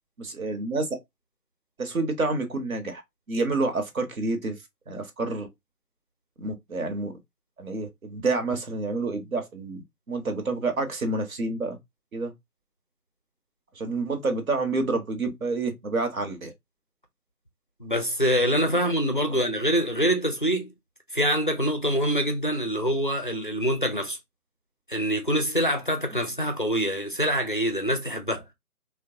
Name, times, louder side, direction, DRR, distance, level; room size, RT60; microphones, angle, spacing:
voice 1, 0.2-0.9 1.8-3.0 3.3-4.6 4.9-5.5 6.4-7.1 7.6-11.8 12.1-12.3 13.7-16.5 19.3-19.4, right 3 dB, 65° right, 1.0 m, -28 dB
voice 2, 17.8-20.7 21.1-24.2 24.9-28.4, equal, 35° left, 0.4 m, -25 dB
3.3 x 2.2 x 2.7 m
figure-of-eight pair, 150°, 46 cm